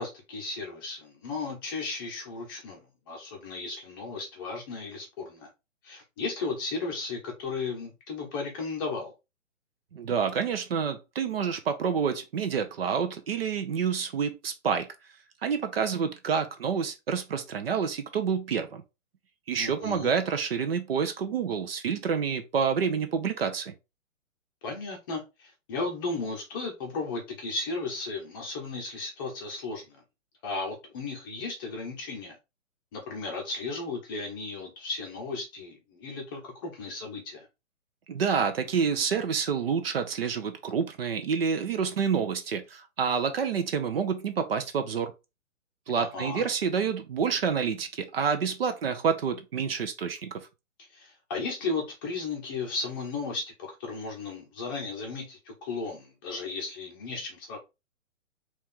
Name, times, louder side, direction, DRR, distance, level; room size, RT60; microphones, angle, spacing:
voice 1, 0.0-5.5 5.8-9.1 19.6-20.1 24.6-30.0 30.4-32.4 32.9-37.5 46.0-46.4 50.9-57.6, left 3 dB, 15° left, 0.8 m, -35 dB
voice 2, 9.9-14.9 15.4-18.8 19.5-23.7 38.1-45.1 45.9-50.3, right 6 dB, 45° right, 0.8 m, -28 dB
4.3 x 3.2 x 3.6 m
hypercardioid pair, 160°, 40 cm